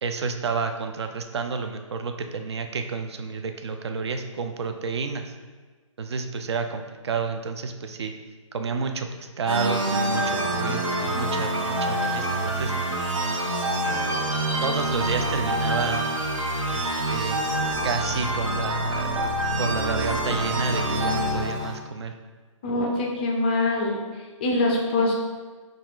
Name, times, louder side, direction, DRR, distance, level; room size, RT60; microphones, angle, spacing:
voice 1, 0.0-5.3 6.0-8.1 8.5-12.7 14.6-16.1 16.7-17.4 17.8-19.3 19.6-22.1, right 5 dB, 55° right, 6 dB, 0.4 m, -30 dB
sound 1, 9.5-21.8, right 1 dB, 80° right, 1.0 m, -26 dB
voice 2, 22.6-25.1, left 2 dB, 15° left, -1 dB, 0.4 m, -24 dB
5.4 x 2.4 x 2.4 m, 1.4 s
figure-of-eight pair, 145°, 17 cm